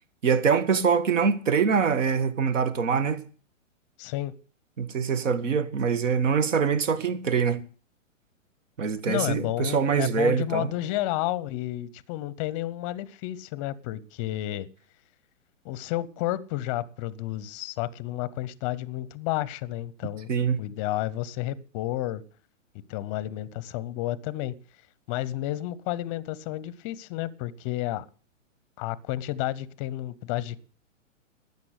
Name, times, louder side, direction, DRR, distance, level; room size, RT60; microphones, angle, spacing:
voice 1, 0.2-3.2 4.8-7.6 8.8-10.7 20.3-20.6, right 6 dB, 70° right, 1.6 m, -24 dB
voice 2, 4.0-4.3 9.1-14.7 15.6-20.3 20.6-22.2 22.9-24.5 25.1-28.0 28.8-30.7, left 15 dB, 25° left, 0.6 m, -31 dB
13.0 x 8.4 x 8.0 m
hypercardioid pair, 140°, 39 cm